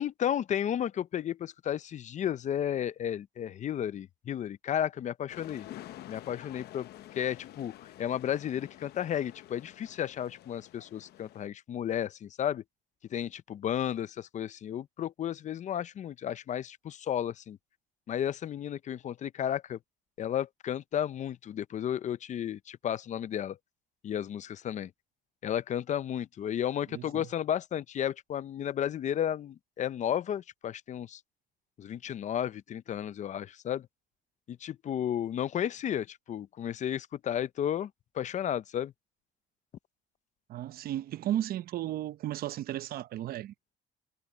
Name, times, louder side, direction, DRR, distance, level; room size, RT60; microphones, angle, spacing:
voice 1, 0.0-5.7 6.1-6.9 7.1-12.6 13.1-17.6 18.1-19.8 20.2-23.6 24.0-24.9 25.4-31.2 31.8-33.9 34.5-38.9, left 10 dB, 45° left, 0.6 m, -33 dB
sound 1, 5.3-11.5, left 14 dB, 75° left, 0.9 m, -49 dB
voice 2, 26.9-27.3 40.5-43.5, right 12 dB, 65° right, 0.8 m, -34 dB
cardioid pair, 110°, 17 cm